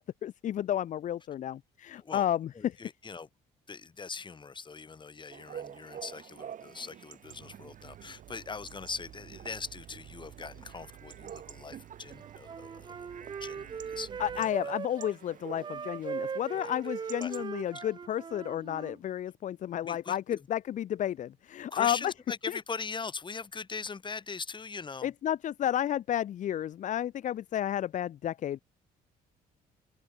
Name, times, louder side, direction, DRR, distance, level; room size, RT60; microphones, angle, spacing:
voice 1, 0.0-2.8 14.2-22.1 22.5-22.6 25.0-28.6, left 11 dB, 50° left, 0.6 m, -32 dB
voice 2, 2.5-3.3 3.7-13.1 13.4-14.1 14.4-14.7 16.5-16.7 17.2-17.4 19.8-20.4 21.7-25.1, left 5 dB, 30° left, 7.1 m, -41 dB
Chatter / Bark / Livestock farm animals working animals, 5.3-17.5, right 9 dB, 50° right, 5.5 m, -49 dB
sound 1, 7.2-14.4, right 13 dB, 70° right, 3.8 m, -53 dB
Wind instrument woodwind instrument, 12.2-15.1 15.6-19.0, right 6 dB, 25° right, 0.6 m, -40 dB
open air
cardioid pair, 110°, 17 cm